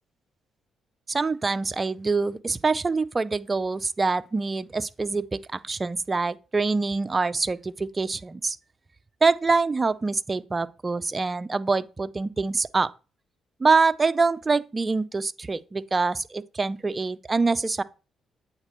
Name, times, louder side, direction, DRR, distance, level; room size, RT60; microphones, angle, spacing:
voice 1, 1.1-8.6 9.2-12.9 13.6-17.8, right 4 dB, 30° right, 0.4 m, -25 dB
8.8 x 4.1 x 3.0 m
supercardioid pair, 60°, 0 cm